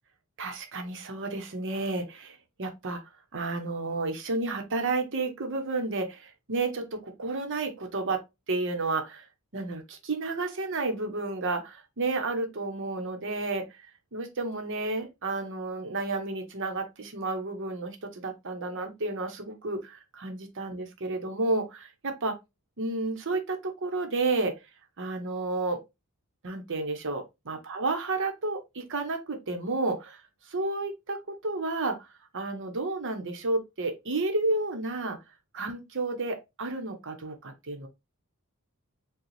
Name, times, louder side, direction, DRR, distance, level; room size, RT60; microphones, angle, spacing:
voice 1, 0.4-3.0 3.3-8.2 8.5-9.3 9.5-13.8 14.1-22.4 22.8-24.6 25.0-25.8 26.4-32.1 32.3-35.2 35.5-37.9, right 3 dB, 60° right, 1.0 m, -31 dB
5.0 x 2.3 x 3.2 m
head